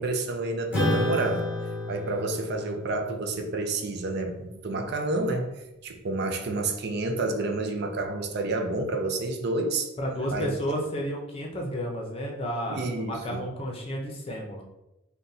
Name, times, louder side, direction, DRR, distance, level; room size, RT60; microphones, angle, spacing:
voice 1, 0.0-1.5 1.9-5.5 5.8-9.9 10.3-10.6 12.7-13.4, right 2 dB, 50° right, 4 dB, 0.4 m, -29 dB
Acoustic guitar / Strum, 0.7-5.5, left 1 dB, 5° right, 1.1 m, -32 dB
voice 2, 10.0-14.6, equal, 25° left, 0 dB, 0.7 m, -32 dB
4.0 x 2.2 x 4.0 m, 0.91 s
head